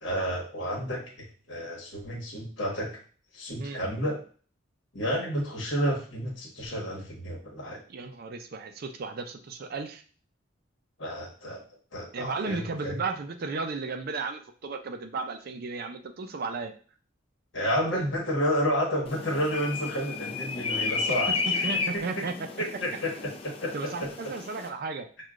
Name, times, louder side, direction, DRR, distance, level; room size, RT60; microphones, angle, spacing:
voice 1, 0.0-3.0 3.3-4.2 4.9-7.8 11.0-11.6 11.9-13.0 17.5-21.6 21.9-22.0 22.6-24.1, equal, 65° left, -2 dB, 1.3 m, -31 dB
voice 2, 7.9-10.0 12.1-16.7 21.1-23.0 23.7-25.1, right 4 dB, 50° right, 7 dB, 0.4 m, -34 dB
sound 1, 19.1-24.7, left 4 dB, 30° left, 0.4 m, -32 dB
6.2 x 2.3 x 2.4 m, 0.41 s
head